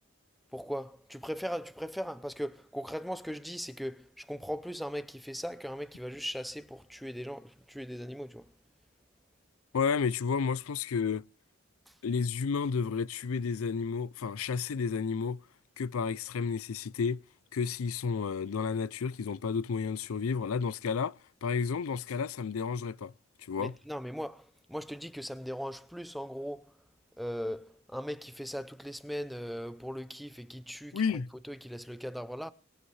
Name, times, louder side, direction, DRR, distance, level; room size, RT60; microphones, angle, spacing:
voice 1, 0.5-8.5 23.6-26.7 27.2-31.2 31.5-32.5, equal, ahead, 0.5 m, -39 dB
voice 2, 9.7-11.2 12.0-15.4 15.8-17.2 17.5-21.2 21.4-23.1 23.5-23.7 30.9-31.3, left 5 dB, 90° left, 0.5 m, -31 dB
24.0 x 8.0 x 3.3 m
head